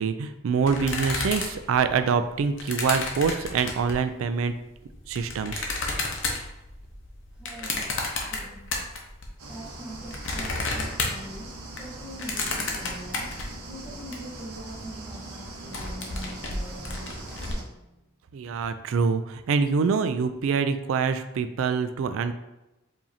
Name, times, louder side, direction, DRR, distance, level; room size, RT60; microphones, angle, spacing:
voice 1, 0.0-4.5 5.1-5.6 18.3-22.3, right 5 dB, 70° right, 10 dB, 0.3 m, -25 dB
sound 1, 0.6-4.1 4.7-9.3 9.6-14.2 14.5-14.6 14.8-15.1 15.4-17.5, left 3 dB, 55° left, 0.7 m, -32 dB
voice 2, 7.3-7.9 8.2-8.6 9.5-18.1, right 1 dB, ahead, -7 dB, 1.0 m, -43 dB
sound 2, 9.4-17.6, right 2 dB, 85° right, 0.8 m, -41 dB
4.9 x 2.7 x 2.7 m, 0.96 s
head